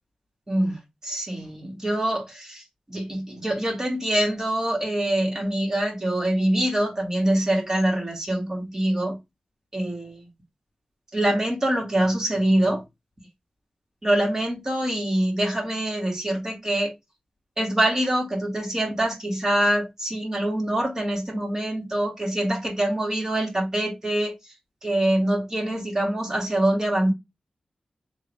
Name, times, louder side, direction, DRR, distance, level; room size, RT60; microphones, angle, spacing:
voice 1, 0.5-0.8 1.0-2.6 2.9-9.2 9.7-10.2 11.1-12.8 14.0-16.9 17.6-24.3 24.8-27.1, right 1 dB, 25° right, 2.0 m, -24 dB
3.8 x 3.0 x 3.5 m
wide cardioid pair, 90°, 2 cm